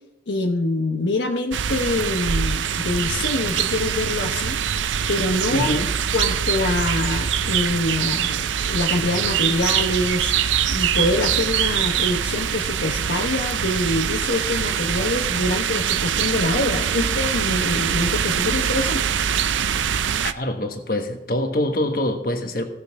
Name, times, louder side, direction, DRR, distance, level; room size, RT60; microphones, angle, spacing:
voice 1, 0.3-4.6 5.1-5.8 6.1-10.3 10.7-19.2, left 2 dB, 75° left, 3 dB, 0.9 m, -25 dB
sound 1, 1.5-20.3, right 8 dB, 85° right, 0.5 m, -23 dB
voice 2, 5.5-5.9 20.4-22.6, left 1 dB, 50° left, 5 dB, 1.4 m, -24 dB
16.5 x 6.6 x 4.8 m, 0.98 s
head